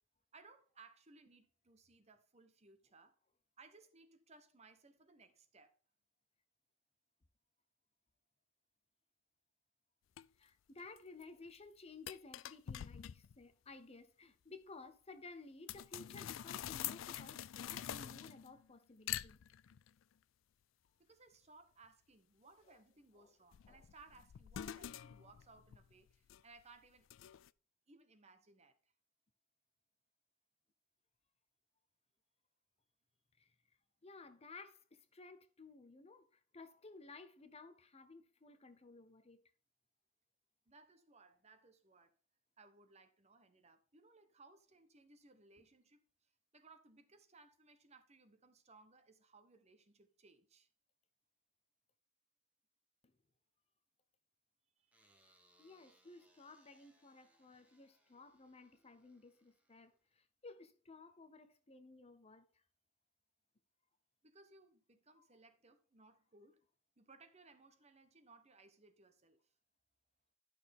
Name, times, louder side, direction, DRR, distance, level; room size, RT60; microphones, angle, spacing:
voice 1, 0.3-3.2 3.6-5.7 21.0-27.1 27.9-28.9 40.7-42.1 42.6-50.7 54.8-55.0 64.2-66.6 67.0-69.5, right 3 dB, 35° right, 1.1 m, -63 dB
sound 1, 10.2-10.3 10.8-11.2 11.5-11.6 12.1-13.4 15.7-18.7 19.1-19.9 23.5-26.6 27.1-27.5, left 11 dB, 65° left, 0.4 m, -46 dB
voice 2, 10.4-19.4 22.7-22.8 23.2-23.3 23.7-23.8 33.4-33.5 34.0-39.4 53.0-53.1 55.6-62.6 65.2-65.3, left 3 dB, 30° left, 0.8 m, -56 dB
sound 2, 54.9-60.2, right 1 dB, 5° right, 2.1 m, -73 dB
11.5 x 6.3 x 3.6 m
head